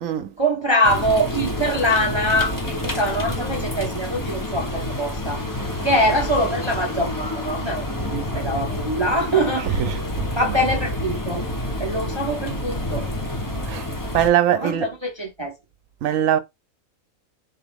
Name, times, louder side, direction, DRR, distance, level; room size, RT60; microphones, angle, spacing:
voice 1, 0.4-9.8 10.3-11.4 11.8-13.1 14.5-15.6, equal, 30° right, 0.5 m, -23 dB
sound 1, 0.8-14.3, left 1 dB, 20° left, 0.6 m, -28 dB
voice 2, 9.6-10.0 13.7-13.9 14.1-14.9 16.0-16.4, right 10 dB, 70° right, 1.0 m, -21 dB
4.2 x 2.9 x 3.5 m
omnidirectional pair, 1.5 m